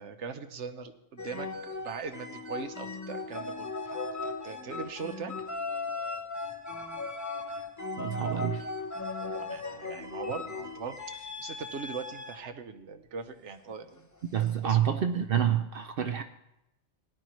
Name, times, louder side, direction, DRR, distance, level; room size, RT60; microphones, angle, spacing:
voice 1, 0.0-5.3 9.4-14.1 14.6-14.8, right 5 dB, 75° right, 9 dB, 1.1 m, -40 dB
sound 1, 1.2-12.5 13.7-14.0, left 3 dB, 15° left, 0.7 m, -37 dB
voice 2, 8.0-8.7 14.3-16.2, right 9 dB, 60° right, 8 dB, 0.7 m, -28 dB
17.0 x 11.0 x 3.1 m, 0.86 s
omnidirectional pair, 1.2 m